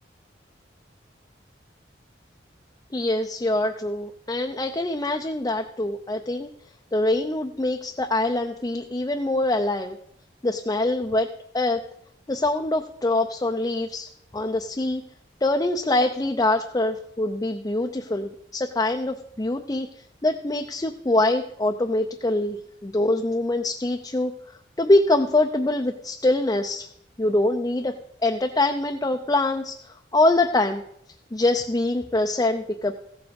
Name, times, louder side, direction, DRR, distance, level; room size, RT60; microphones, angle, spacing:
voice 1, 2.9-6.5 6.9-10.0 10.4-11.3 11.5-11.8 12.3-14.1 14.3-15.0 15.4-19.9 20.2-24.3 24.8-26.9 27.2-27.9 28.2-30.8 31.3-32.9, left 2 dB, 20° left, 4 dB, 0.6 m, -24 dB
15.5 x 7.0 x 5.2 m, 0.69 s
head